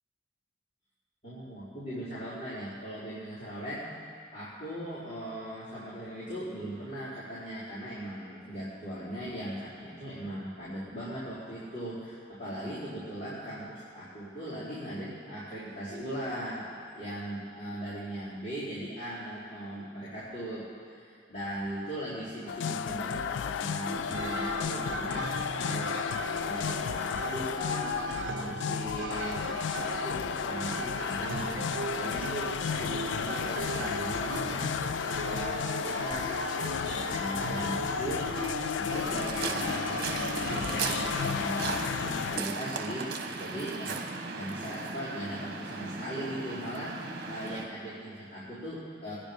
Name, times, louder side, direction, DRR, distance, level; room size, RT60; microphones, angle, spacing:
voice 1, 1.2-3.9 4.3-16.7 16.9-20.6 20.9-26.1 26.4-34.8 35.2-36.5 36.8-38.4 38.7-43.1 43.4-44.0 44.3-49.1, equal, 45° left, -13 dB, 4.5 m, -39 dB
sound 1, 22.5-42.4, left 8 dB, 75° left, 0.3 m, -33 dB
sound 2, 23.9-41.3, right 4 dB, 80° right, 0.7 m, -38 dB
Waves surf, 38.9-47.7, right 4 dB, 50° right, 1.3 m, -36 dB
22.5 x 10.5 x 5.3 m, 2.3 s
head